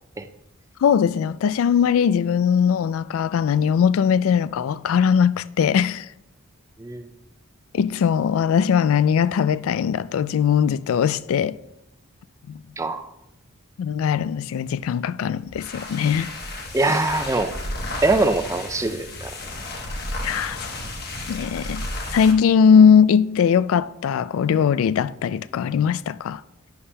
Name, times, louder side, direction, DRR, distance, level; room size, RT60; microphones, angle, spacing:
voice 1, 0.8-6.1 7.7-11.6 12.5-12.6 13.8-16.3 20.2-20.6 21.3-21.9 22.1-26.4, left 7 dB, 70° left, 0.3 m, -20 dB
voice 2, 12.8-13.1 16.7-17.5 18.0-19.3, right 2 dB, 15° right, 0.4 m, -22 dB
sound 1, 15.4-22.4, left 2 dB, 50° left, 1.1 m, -32 dB
11.0 x 9.7 x 2.2 m
head